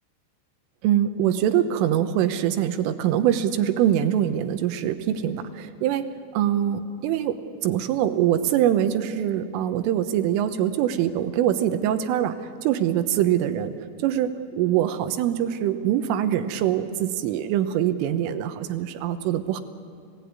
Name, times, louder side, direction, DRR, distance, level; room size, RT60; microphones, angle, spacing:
voice 1, 0.8-6.1 6.3-13.7 14.0-14.3 14.6-19.6, right 10 dB, 80° right, 9 dB, 3.6 m, -23 dB
30.0 x 17.5 x 9.5 m, 2.4 s
omnidirectional pair, 5.8 m